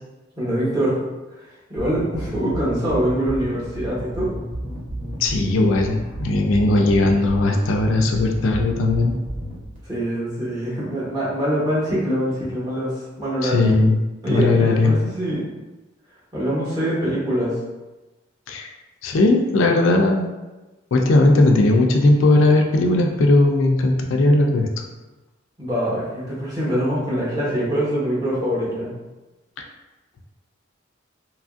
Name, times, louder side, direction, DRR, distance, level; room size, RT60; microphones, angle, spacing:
voice 1, 0.4-1.0 1.7-4.3 9.9-12.9 13.2-13.7 14.2-15.4 16.3-17.6 25.6-28.9, equal, 20° right, -9 dB, 1.0 m, -24 dB
sound 1, 1.8-9.8, right 1 dB, 40° right, 0.7 m, -32 dB
voice 2, 5.2-9.2 13.4-14.0 14.3-14.9 18.5-18.7 19.0-20.3 20.9-24.7, left 2 dB, 75° left, 2 dB, 0.4 m, -18 dB
2.9 x 2.4 x 2.4 m, 1.1 s
head